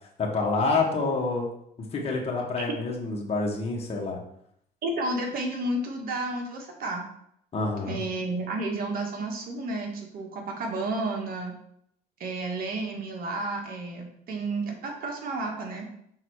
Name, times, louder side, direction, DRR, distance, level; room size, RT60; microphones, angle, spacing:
voice 1, 0.2-1.5 1.9-4.2 7.5-8.0, left 3 dB, 35° left, -1 dB, 1.5 m, -27 dB
voice 2, 4.8-7.0 7.9-11.6 12.2-15.9, right 2 dB, 60° right, 1 dB, 1.7 m, -31 dB
5.7 x 4.0 x 4.8 m, 0.71 s
cardioid pair, 110°, 17 cm